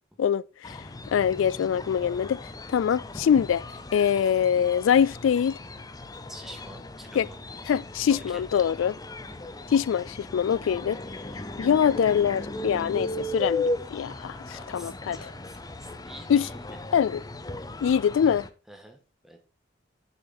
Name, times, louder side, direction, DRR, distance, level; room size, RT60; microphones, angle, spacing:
voice 1, 0.2-0.8 1.1-2.4 2.7-3.6 3.9-5.6 7.2-7.3 7.7-8.9 9.7-11.0 11.6-15.3 16.3-16.5 16.9-17.2 17.8-18.5, left 8 dB, 90° left, 0.3 m, -24 dB
sound 1, 0.6-18.5, left 2 dB, 20° left, 0.6 m, -37 dB
voice 2, 6.3-7.4 8.1-8.7 9.3-9.4 10.7-10.9 14.5-16.8 18.7-19.4, equal, ahead, 1.6 m, -47 dB
7.1 x 7.0 x 5.4 m
head